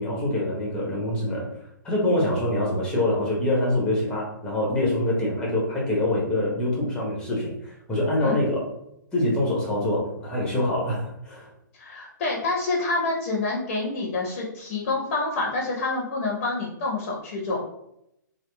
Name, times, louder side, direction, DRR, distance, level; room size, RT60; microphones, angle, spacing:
voice 1, 0.0-1.5 1.8-8.7 9.1-11.5, left 1 dB, 10° left, -3 dB, 0.8 m, -25 dB
voice 2, 11.7-17.6, left 3 dB, 40° left, -2 dB, 0.6 m, -27 dB
2.8 x 2.4 x 2.2 m, 0.80 s
figure-of-eight pair, 120°, 11 cm